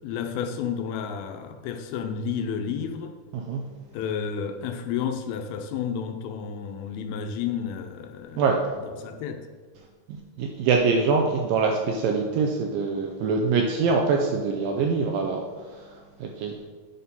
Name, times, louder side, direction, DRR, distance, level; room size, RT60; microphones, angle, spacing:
voice 1, 0.0-3.1 3.9-8.4 8.8-9.4, left 7 dB, 80° left, 5 dB, 2.4 m, -31 dB
voice 2, 10.1-16.6, right 4 dB, 80° right, 2 dB, 2.0 m, -24 dB
9.3 x 4.2 x 5.3 m, 1.5 s
omnidirectional pair, 4.6 m